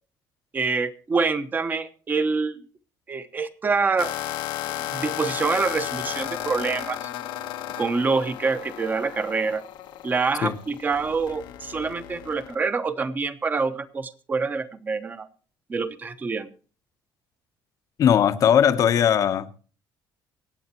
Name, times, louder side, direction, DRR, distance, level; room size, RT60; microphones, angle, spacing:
voice 1, 0.5-2.6 3.1-4.1 4.7-7.1 7.8-9.6 10.0-15.3 15.7-16.5, right 4 dB, 25° right, 1.0 m, -26 dB
sound 1, 4.0-12.5, left 13 dB, 85° left, 1.2 m, -34 dB
voice 2, 18.0-19.6, left 9 dB, 50° left, 0.9 m, -19 dB
25.0 x 8.6 x 3.0 m
cardioid pair, 160°, 8 cm